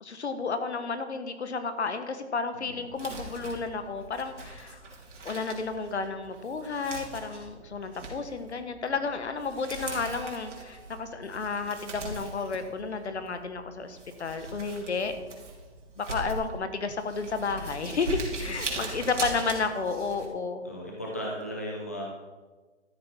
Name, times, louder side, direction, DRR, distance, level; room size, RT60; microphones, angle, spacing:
voice 1, 0.0-4.8 5.2-15.1 16.0-20.7, left 4 dB, 70° left, 9 dB, 1.4 m, -32 dB
Crumpling crinkling, 2.9-20.3, right 2 dB, 85° right, 3.0 m, -40 dB
sound 1, 9.3-12.6, right 5 dB, 40° right, 3.0 m, -52 dB
voice 2, 20.6-22.0, equal, 15° left, -3 dB, 0.5 m, -37 dB
12.5 x 8.4 x 4.4 m, 1.3 s
hypercardioid pair, 175°, 35 cm